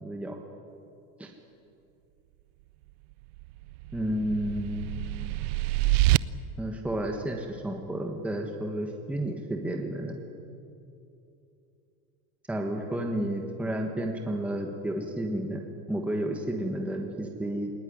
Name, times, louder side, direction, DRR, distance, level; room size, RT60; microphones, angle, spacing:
voice 1, 0.0-0.4 1.2-1.3 3.9-4.9 6.6-10.2 12.5-15.6 15.9-17.7, right 1 dB, 5° right, 2 dB, 1.3 m, -31 dB
sound 1, 3.4-6.2, right 20 dB, 70° right, 0.6 m, -26 dB
19.5 x 19.5 x 9.9 m, 2.7 s
supercardioid pair, 160°, 33 cm